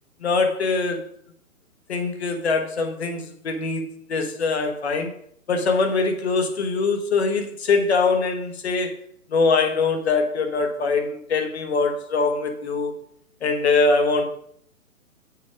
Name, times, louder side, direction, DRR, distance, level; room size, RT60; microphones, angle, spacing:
voice 1, 0.2-1.1 1.9-5.1 5.5-9.0 9.3-12.9 13.4-14.2, left 4 dB, 45° left, 5 dB, 1.4 m, -23 dB
6.4 x 6.4 x 5.0 m, 0.65 s
figure-of-eight pair, 130°, 43 cm